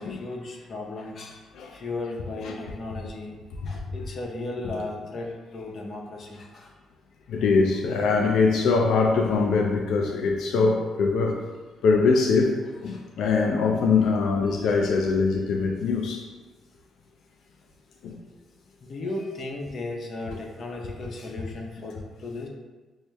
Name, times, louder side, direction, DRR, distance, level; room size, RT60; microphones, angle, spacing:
voice 1, 0.0-3.4 3.6-6.7 12.9-13.0 18.8-22.5, left 2 dB, 55° left, 0 dB, 0.7 m, -35 dB
voice 2, 7.3-11.4 11.8-16.3 18.0-18.2, left 4 dB, 80° left, 1 dB, 0.3 m, -22 dB
6.1 x 2.1 x 2.2 m, 1.3 s
cardioid pair, 90°, 0 cm